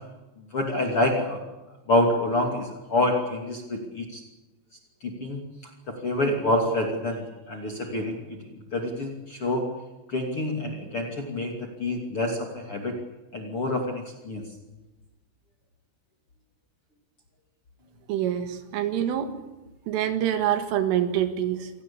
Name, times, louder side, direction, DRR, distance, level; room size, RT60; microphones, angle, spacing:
voice 1, 0.5-1.4 1.9-4.2 5.0-5.4 5.9-8.2 8.7-9.7 10.1-13.0 13.3-14.4, left 1 dB, 35° left, 1 dB, 2.5 m, -27 dB
voice 2, 18.1-19.3 19.9-21.7, right 10 dB, 75° right, 7 dB, 4.2 m, -26 dB
27.5 x 18.0 x 8.6 m, 1.1 s
omnidirectional pair, 6.0 m